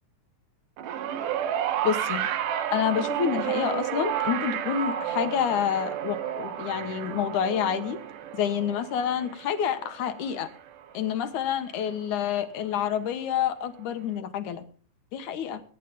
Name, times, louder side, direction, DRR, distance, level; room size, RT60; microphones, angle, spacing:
sound 1, 0.8-11.2 12.3-12.4, right 9 dB, 80° right, 2.7 m, -31 dB
voice 1, 1.8-2.3 2.7-8.0 8.3-10.5 10.9-14.6 15.1-15.6, left 8 dB, 70° left, 10 dB, 2.6 m, -28 dB
24.0 x 10.5 x 3.6 m, 0.42 s
omnidirectional pair, 3.7 m